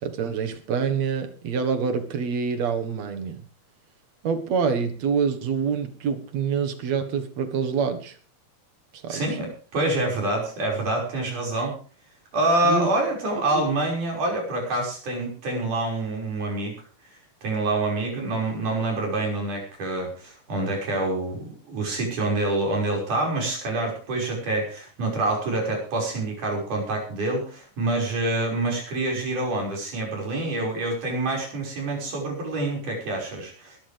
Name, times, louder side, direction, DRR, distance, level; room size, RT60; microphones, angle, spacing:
voice 1, 0.0-3.4 4.2-8.2 8.9-9.4 12.6-12.9, right 6 dB, 60° right, 7 dB, 2.7 m, -26 dB
voice 2, 9.1-11.8 12.3-16.7 17.4-33.8, right 2 dB, 80° right, 0 dB, 7.2 m, -26 dB
20.5 x 13.0 x 3.5 m, 0.39 s
omnidirectional pair, 3.5 m